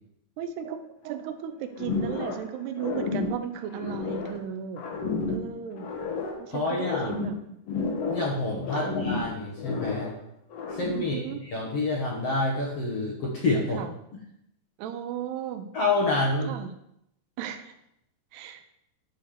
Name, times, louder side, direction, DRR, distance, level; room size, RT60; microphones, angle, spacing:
voice 1, 0.4-4.8 5.3-5.9 6.4-7.3 8.8-9.0 10.9-11.4 13.7-13.9 14.8-15.7 16.4-16.7 17.4-17.7 18.3-18.6, right 9 dB, 85° right, 8 dB, 2.8 m, -35 dB
sound 1, 1.8-2.5 2.8-4.4 4.8-6.4 6.7-8.4 8.6-10.2 10.5-11.1, left 4 dB, 70° left, 1.6 m, -31 dB
voice 2, 6.5-7.1 8.1-10.1 10.7-13.8 15.7-16.5, left 2 dB, 55° left, -3 dB, 1.9 m, -28 dB
11.0 x 4.0 x 6.7 m, 0.77 s
omnidirectional pair, 4.7 m